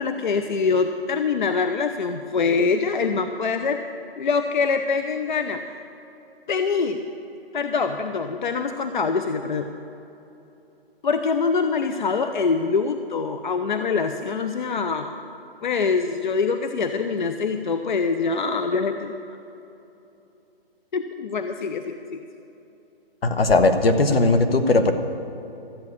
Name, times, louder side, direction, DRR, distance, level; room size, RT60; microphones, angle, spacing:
voice 1, 0.0-3.8 4.2-5.7 6.5-7.0 7.5-9.7 11.0-15.2 15.6-19.1 20.9-22.3, left 5 dB, 55° left, 7 dB, 0.7 m, -24 dB
voice 2, 23.2-24.9, left 2 dB, 75° left, 7 dB, 1.4 m, -18 dB
13.5 x 8.4 x 8.3 m, 2.9 s
hypercardioid pair, 175°, 30 cm